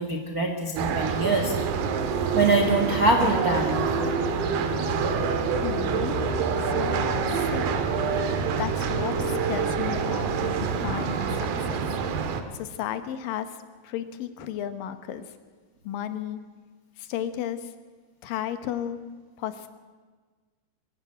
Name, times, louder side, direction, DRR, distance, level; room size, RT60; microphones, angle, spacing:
voice 1, 0.0-1.5 2.3-4.2, right 2 dB, 85° right, 3 dB, 0.8 m, -24 dB
sound 1, 0.8-12.4, right 6 dB, 70° right, 2.9 m, -27 dB
Wind instrument woodwind instrument, 1.8-10.4, left 7 dB, 35° left, 3.0 m, -36 dB
voice 2, 5.6-6.2 6.6-7.7 8.3-12.0 12.5-13.6 13.8-15.3 15.8-16.4 17.0-17.7 18.2-19.0 19.4-19.7, left 10 dB, 70° left, 10 dB, 2.5 m, -34 dB
23.0 x 12.0 x 9.7 m, 1.4 s
omnidirectional pair, 4.7 m